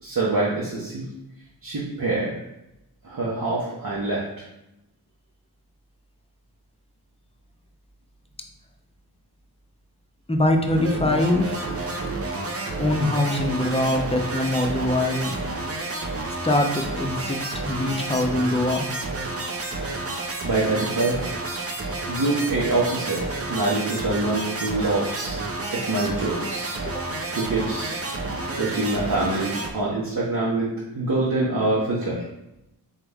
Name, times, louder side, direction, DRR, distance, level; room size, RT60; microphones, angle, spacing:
voice 1, 0.0-1.1 1.6-2.3 3.0-4.2 20.4-21.3 22.1-25.4 25.7-26.7 27.0-27.1 27.3-28.0 28.6-32.2, right 2 dB, 55° right, -6 dB, 1.2 m, -25 dB
voice 2, 10.3-11.6 12.8-15.4 16.4-17.4 17.6-18.8 26.8-27.0, left 1 dB, 15° left, 3 dB, 0.7 m, -23 dB
sound 1, 10.7-29.7, right 2 dB, 35° right, 0.7 m, -30 dB
4.0 x 3.4 x 3.5 m, 0.87 s
cardioid pair, 50°, 41 cm